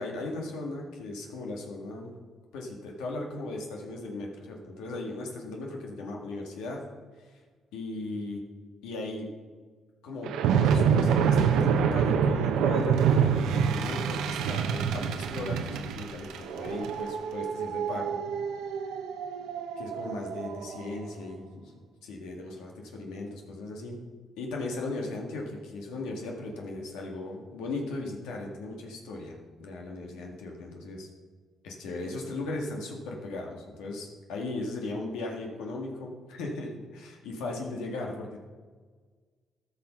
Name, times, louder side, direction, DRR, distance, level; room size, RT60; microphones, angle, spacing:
voice 1, 0.0-2.1 2.5-6.9 7.3-7.4 7.7-8.4 8.8-9.3 10.0-18.2 19.8-21.7 22.0-24.0 24.4-31.1 31.6-38.4, left 2 dB, 90° left, 0 dB, 1.8 m, -37 dB
sound 1, 10.3-20.8, right 7 dB, 85° right, 0.8 m, -26 dB
14.0 x 5.7 x 5.6 m, 1.5 s
supercardioid pair, 70°, 0 cm